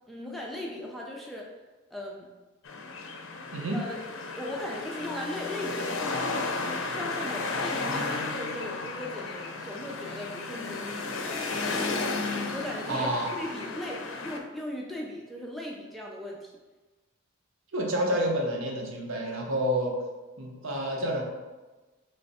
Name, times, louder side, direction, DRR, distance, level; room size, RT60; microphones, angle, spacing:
voice 1, 0.1-1.5 1.9-2.3 3.7-4.0 4.4-6.5 6.9-11.4 12.5-16.5, left 1 dB, ahead, -2 dB, 0.4 m, -38 dB
sound 1, 2.6-14.4, left 3 dB, 70° left, 0.5 m, -33 dB
voice 2, 3.5-3.8 12.9-13.3 17.7-19.9 20.4-21.2, equal, 75° right, 0 dB, 0.8 m, -29 dB
3.3 x 3.2 x 4.1 m, 1.2 s
head